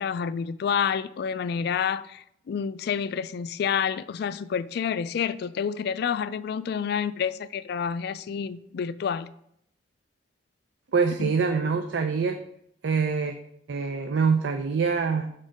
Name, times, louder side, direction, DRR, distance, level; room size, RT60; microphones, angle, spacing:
voice 1, 0.0-9.3 11.2-11.3, left 7 dB, 60° left, 0.3 m, -29 dB
voice 2, 10.9-12.4 12.8-13.3 13.7-15.3, right 5 dB, 70° right, 0.5 m, -25 dB
6.3 x 3.7 x 5.1 m
head